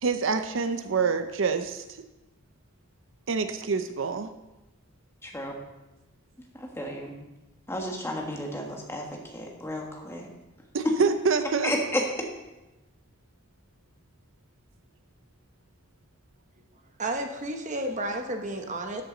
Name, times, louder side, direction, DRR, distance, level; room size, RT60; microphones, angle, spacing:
voice 1, 0.0-1.8 3.3-4.3 10.7-11.7, right 5 dB, 65° right, 9 dB, 0.6 m, -26 dB
voice 2, 5.2-5.5 6.5-7.1 7.7-10.3 10.8-10.9 11.6-12.0, equal, 10° left, 0 dB, 1.5 m, -32 dB
voice 3, 17.0-19.0, right 1 dB, 35° right, 4 dB, 0.9 m, -31 dB
12.5 x 8.1 x 3.9 m, 1.0 s
head